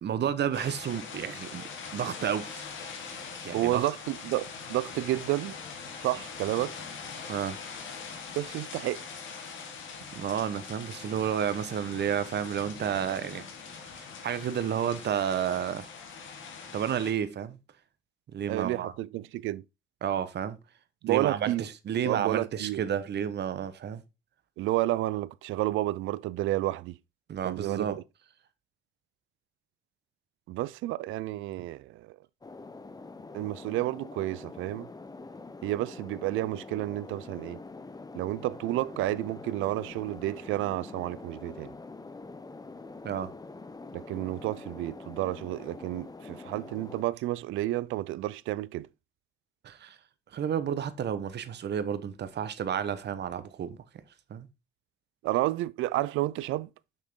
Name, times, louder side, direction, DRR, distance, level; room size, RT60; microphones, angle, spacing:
voice 1, 0.0-1.6 1.9-2.7 3.4-3.9 7.3-7.6 10.1-13.4 14.2-15.9 16.7-17.6 18.3-18.9 20.0-20.6 21.1-24.0 27.3-28.0 43.0-43.3 49.6-50.0 50.3-53.8 54.3-54.5, right 9 dB, 60° right, 1.1 m, -31 dB
sound 1, 0.5-17.1, left 5 dB, 75° left, 2.2 m, -42 dB
voice 2, 3.5-5.6 6.0-6.8 8.4-9.0 18.5-19.6 21.0-21.6 22.0-22.8 24.6-27.0 27.4-28.0 30.5-32.2 33.3-34.9 35.6-37.6 38.1-41.7 43.9-48.9 55.2-56.7, right 16 dB, 90° right, 0.4 m, -31 dB
sound 2, 32.4-47.0, left 3 dB, 20° left, 0.8 m, -45 dB
6.5 x 6.1 x 3.7 m
cardioid pair, 90°, 20 cm